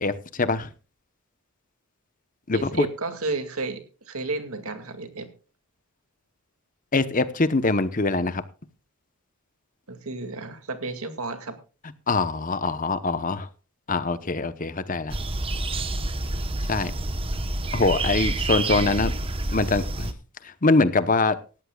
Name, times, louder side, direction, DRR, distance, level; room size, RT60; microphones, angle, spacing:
voice 1, 0.0-0.7 2.5-2.9 6.9-8.4 12.1-13.5 13.9-15.1 16.7-16.9 17.7-19.1 19.5-20.1 20.4-21.4, left 3 dB, 35° left, 13 dB, 1.0 m, -23 dB
voice 2, 2.5-3.8 4.1-5.3 9.9-11.6, right 3 dB, 75° right, 8 dB, 2.3 m, -32 dB
sound 1, 15.1-20.1, right 2 dB, 25° right, 1.0 m, -28 dB
18.5 x 13.5 x 2.4 m, 0.34 s
head